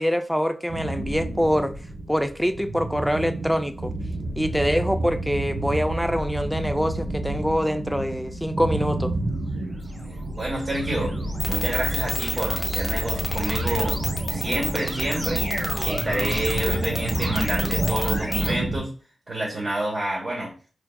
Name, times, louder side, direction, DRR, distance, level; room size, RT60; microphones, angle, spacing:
voice 1, 0.0-1.7 2.1-3.9 4.4-9.1, equal, ahead, 0.4 m, -24 dB
sound 1, 0.7-18.8, right 2 dB, 70° right, 0.8 m, -30 dB
sound 2, 9.5-18.5, equal, 20° right, 1.3 m, -34 dB
voice 2, 10.4-11.1 11.5-15.4 15.8-18.9 19.3-20.5, right 1 dB, 45° right, 1.3 m, -28 dB
sound 3, 11.4-18.5, left 1 dB, 20° left, 0.8 m, -27 dB
4.4 x 3.5 x 2.3 m
cardioid pair, 75°, 0 cm